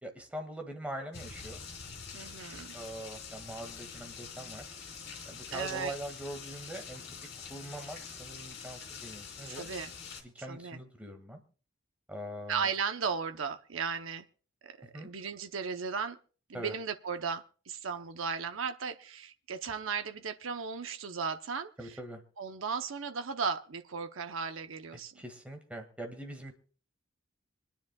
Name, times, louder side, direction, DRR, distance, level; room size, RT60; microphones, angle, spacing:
voice 1, 0.0-1.6 2.7-4.6 5.3-9.7 10.2-11.4 12.1-12.7 14.9-15.1 16.5-16.8 21.8-22.2 24.9-26.5, right 1 dB, 5° right, 4 dB, 1.9 m, -43 dB
sound 1, 1.1-10.2, left 5 dB, 60° left, 3.2 m, -45 dB
voice 2, 2.1-2.7 5.5-5.9 9.5-9.9 10.5-10.8 12.5-14.2 14.6-16.2 16.5-21.9 22.4-25.2, right 5 dB, 85° right, 8 dB, 0.8 m, -36 dB
26.0 x 10.0 x 2.3 m, 0.39 s
head